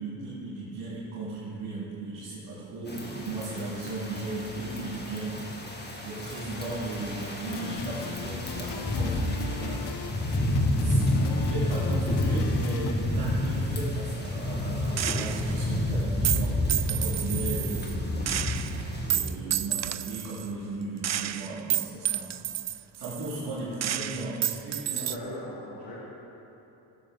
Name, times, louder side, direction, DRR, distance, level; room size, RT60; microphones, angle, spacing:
voice 1, 0.0-5.4 6.0-9.9 10.8-16.6 16.8-18.7 19.1-22.3 22.9-25.0, right 2 dB, 90° right, -10 dB, 2.3 m, -36 dB
sound 1, 2.9-19.2, left 1 dB, 20° left, 1.9 m, -30 dB
sound 2, 7.4-12.9, left 8 dB, 50° left, 0.7 m, -38 dB
voice 2, 11.0-11.5 12.0-12.1 24.9-26.0, left 1 dB, 80° left, -7 dB, 2.0 m, -40 dB
Gunshot gunfire, 15.0-15.6 16.2-17.9 18.3-20.5 21.0-23.5 23.8-25.2, right 11 dB, 35° right, 0.4 m, -30 dB
15.0 x 7.6 x 3.9 m, 2.9 s
supercardioid pair, 45°, 49 cm